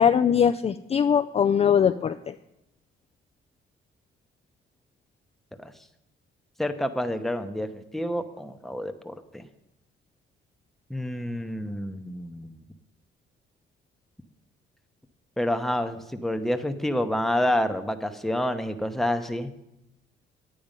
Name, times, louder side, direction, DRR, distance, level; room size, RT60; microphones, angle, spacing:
voice 1, 0.0-2.3, left 8 dB, 30° left, 9 dB, 0.3 m, -21 dB
voice 2, 6.6-9.4 10.9-12.6 15.4-19.5, left 1 dB, ahead, 7 dB, 0.8 m, -28 dB
9.5 x 8.9 x 5.2 m, 0.87 s
cardioid pair, 90°, 20 cm